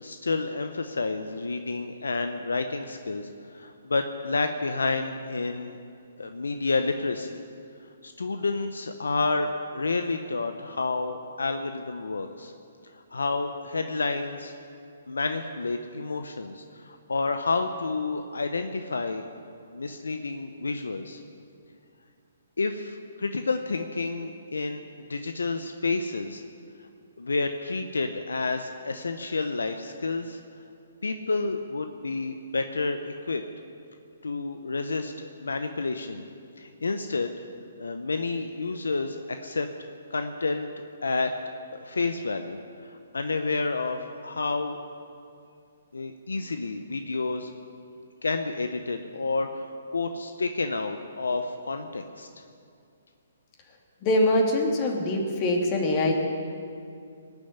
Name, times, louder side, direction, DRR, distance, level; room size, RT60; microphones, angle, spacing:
voice 1, 0.0-5.7 6.2-7.4 8.0-12.5 13.1-14.5 15.1-19.2 19.7-21.2 22.6-26.4 27.2-30.4 31.0-33.4 34.2-36.2 36.6-37.3 37.8-39.7 40.1-40.7 41.0-41.3 41.8-44.8 45.9-47.5 48.2-49.7 49.9-52.3, left 3 dB, 90° left, 7 dB, 0.8 m, -30 dB
voice 2, 54.0-56.1, left 1 dB, 30° left, 1 dB, 2.5 m, -23 dB
19.0 x 7.1 x 9.6 m, 2.4 s
hypercardioid pair, 145°, 0 cm